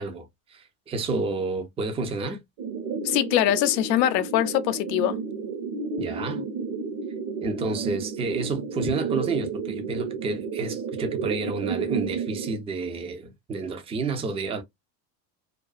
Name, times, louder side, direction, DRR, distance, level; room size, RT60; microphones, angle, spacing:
voice 1, 0.0-2.4 6.0-6.4 7.4-14.6, right 3 dB, 15° right, 0.4 m, -30 dB
sound 1, 2.6-12.6, right 5 dB, 50° right, 0.9 m, -32 dB
voice 2, 3.0-5.2, left 13 dB, 85° left, 0.6 m, -23 dB
2.4 x 2.3 x 2.2 m
supercardioid pair, 95°, 48 cm